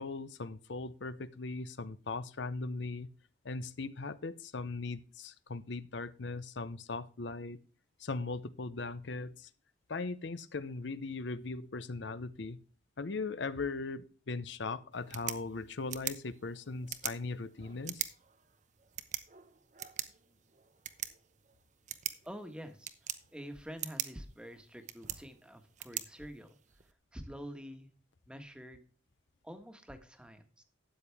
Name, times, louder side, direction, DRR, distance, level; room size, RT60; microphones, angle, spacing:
voice 1, 0.0-3.1 3.4-7.6 8.0-9.5 9.9-12.6 13.0-18.1, left 3 dB, 70° left, 14 dB, 0.7 m, -39 dB
sound 1, 14.9-26.9, right 11 dB, 40° right, 0.9 m, -43 dB
voice 2, 22.2-22.9 23.3-26.6 27.1-27.9 28.3-28.8 29.4-30.6, equal, 5° right, 7 dB, 1.4 m, -47 dB
13.0 x 8.9 x 3.4 m, 0.39 s
head